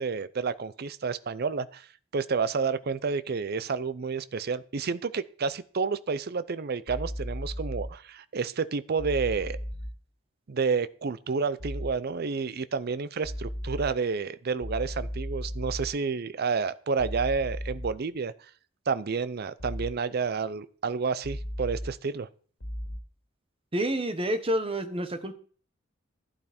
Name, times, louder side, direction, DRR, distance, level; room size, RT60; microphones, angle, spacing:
voice 1, 0.0-1.9 2.1-9.6 10.5-18.3 18.9-22.3, right 5 dB, 55° right, 15 dB, 0.5 m, -30 dB
sound 1, 6.9-7.9 9.0-9.9 11.6-11.9 13.2-13.9 14.6-15.9 17.0-17.9 19.6-19.9 21.2-21.9 22.6-23.0, equal, 70° left, 2.8 m, -35 dB
voice 2, 23.7-25.3, right 1 dB, 30° right, 9 dB, 1.3 m, -28 dB
12.0 x 11.5 x 4.3 m, 0.44 s
head